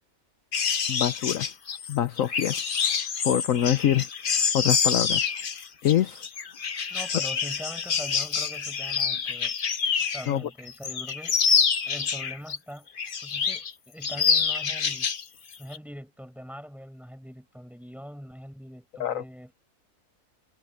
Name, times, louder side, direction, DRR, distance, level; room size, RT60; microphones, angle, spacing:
sound 1, 0.5-10.3 10.7-12.6 13.0-13.7 14.0-15.2 15.5-15.8, left 6 dB, 40° left, 0.9 m, -27 dB
voice 1, 0.9-1.6 1.9-2.6 3.2-4.1 4.5-5.3 5.8-6.2 10.3-10.5 19.0-19.2, left 11 dB, 65° left, 1.1 m, -25 dB
voice 2, 6.9-9.5 10.1-11.4 11.9-12.9 13.2-15.1 15.6-19.5, equal, ahead, 8.0 m, -42 dB
omnidirectional pair, 1.6 m